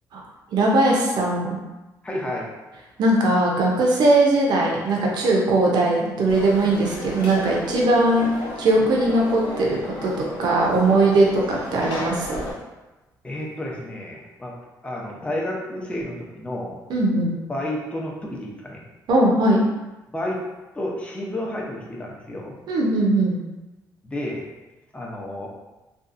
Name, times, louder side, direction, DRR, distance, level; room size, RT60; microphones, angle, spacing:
voice 1, 0.5-1.6 3.0-8.3 8.6-10.1 10.4-12.5 16.9-17.4 19.1-19.6 22.7-23.4, right 2 dB, 65° right, -2 dB, 0.6 m, -20 dB
voice 2, 2.0-2.5 8.8-8.9 13.2-14.5 14.8-16.8 17.5-18.8 20.1-20.4 20.7-22.6 24.0-24.4 24.9-25.5, left 1 dB, 15° left, -2 dB, 0.6 m, -31 dB
Conversation / Crowd, 6.3-12.5, left 2 dB, 75° left, 0.7 m, -34 dB
2.6 x 2.3 x 2.5 m, 1.1 s
cardioid pair, 80°, 8 cm